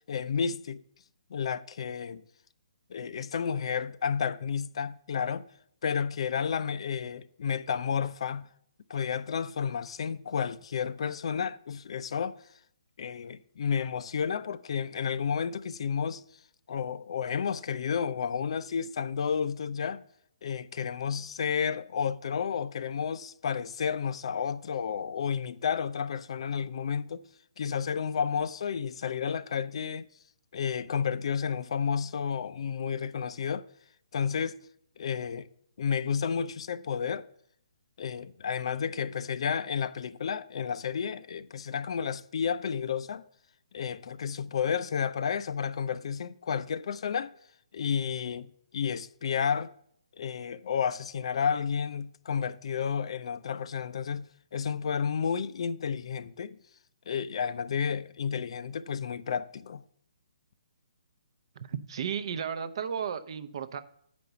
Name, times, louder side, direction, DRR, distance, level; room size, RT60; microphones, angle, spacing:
voice 1, 0.1-0.8 1.3-2.2 2.9-5.4 5.8-8.5 8.9-12.4 13.0-16.2 16.7-20.0 20.4-27.2 27.6-30.1 30.5-33.6 34.1-34.5 35.0-35.5 35.8-37.3 38.0-43.2 43.7-47.3 47.7-49.7 50.2-54.3 54.5-56.6 57.1-59.8, left 7 dB, 55° left, 0.5 m, -31 dB
voice 2, 61.6-63.8, right 7 dB, 50° right, 0.7 m, -34 dB
8.0 x 5.1 x 6.8 m
hypercardioid pair, 155°, 4 cm